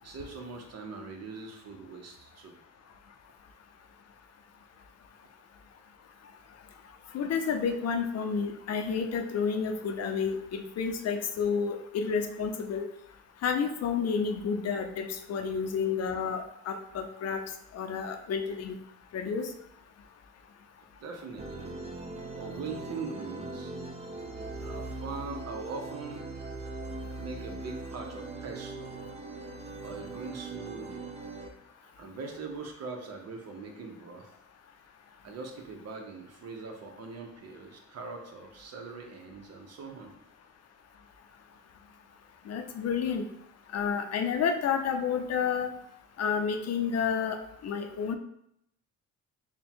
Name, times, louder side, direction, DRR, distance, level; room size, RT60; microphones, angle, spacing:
voice 1, 0.0-2.6 21.0-21.8 22.3-23.7 24.6-26.3 27.1-29.1 29.8-31.0 31.8-34.3 35.2-40.1, right 4 dB, 55° right, 3 dB, 0.8 m, -42 dB
voice 2, 7.1-12.9 13.4-17.4 17.7-18.8 19.1-19.5 42.5-43.2 43.7-45.7 46.2-48.2, left 6 dB, 55° left, 6 dB, 0.6 m, -30 dB
sound 1, 21.4-31.5, right 2 dB, 20° right, 0.5 m, -40 dB
3.5 x 2.2 x 4.3 m, 0.74 s
cardioid pair, 90°, 30 cm